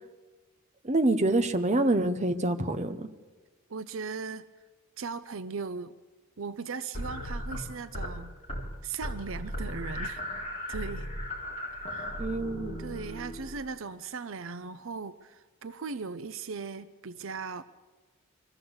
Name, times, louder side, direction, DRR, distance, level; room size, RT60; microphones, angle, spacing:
voice 1, 0.8-3.1 12.2-12.8, right 2 dB, 35° right, 9 dB, 0.9 m, -26 dB
voice 2, 3.7-4.5 5.0-5.9 6.4-8.3 8.8-10.4 10.7-11.1 11.7-12.3 12.8-17.6, right 5 dB, 65° right, 13 dB, 0.6 m, -38 dB
sound 1, 6.9-8.1 8.4-8.7 9.0-13.8, equal, 30° left, 4.0 m, -36 dB
24.0 x 14.0 x 7.9 m, 1.4 s
head